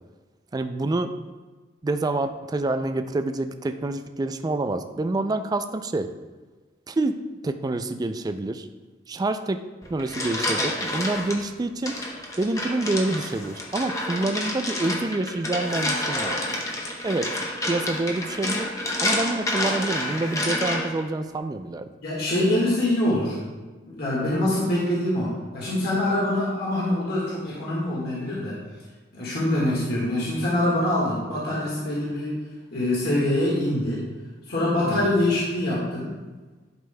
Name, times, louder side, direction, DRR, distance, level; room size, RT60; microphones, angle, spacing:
voice 1, 0.5-1.1 1.8-6.1 6.9-8.7 9.1-9.6 9.9-11.9 12.4-16.4 17.0-17.3 17.6-18.7 19.0-21.8 34.8-35.1, right 2 dB, 20° right, 9 dB, 0.3 m, -27 dB
sound 1, 9.8-11.4 11.9-21.0, left 1 dB, 15° left, 0.8 m, -29 dB
voice 2, 22.0-23.4 23.9-28.6 29.1-32.4 32.7-34.0 34.5-36.2, left 1 dB, 55° left, -6 dB, 1.6 m, -24 dB
11.0 x 5.2 x 2.2 m, 1.3 s
head